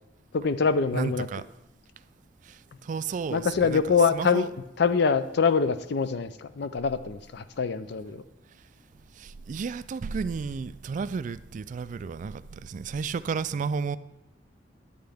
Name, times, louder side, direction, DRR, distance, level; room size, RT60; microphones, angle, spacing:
voice 1, 0.3-1.3 3.3-4.5 4.8-8.2, left 5 dB, 65° left, 13 dB, 0.5 m, -24 dB
voice 2, 0.9-1.5 2.4-4.5 9.1-14.0, right 5 dB, 45° right, 14 dB, 0.3 m, -32 dB
9.5 x 8.7 x 3.5 m, 0.94 s
head